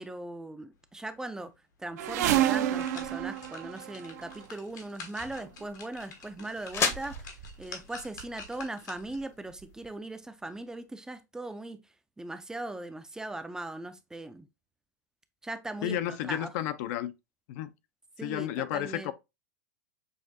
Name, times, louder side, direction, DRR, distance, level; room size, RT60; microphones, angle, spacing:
voice 1, 0.0-1.5 1.8-11.8 12.2-14.5 15.4-16.5 18.2-19.1, right 2 dB, 5° right, 0.4 m, -39 dB
sound 1, 1.9-2.0 2.4-9.3 9.7-9.8, left 4 dB, 80° left, 1.4 m, -48 dB
sound 2, 2.0-4.4 5.4-5.6 6.4-6.5 6.7-7.6 7.9-8.5 9.2-9.3 9.6-9.7, right 12 dB, 65° right, 0.5 m, -30 dB
sound 3, 4.1-10.0, left 5 dB, 30° left, 0.8 m, -38 dB
voice 2, 15.8-17.1 17.5-17.7 18.2-19.1, left 12 dB, 60° left, 0.5 m, -32 dB
6.4 x 2.5 x 2.5 m
hypercardioid pair, 120°, 10 cm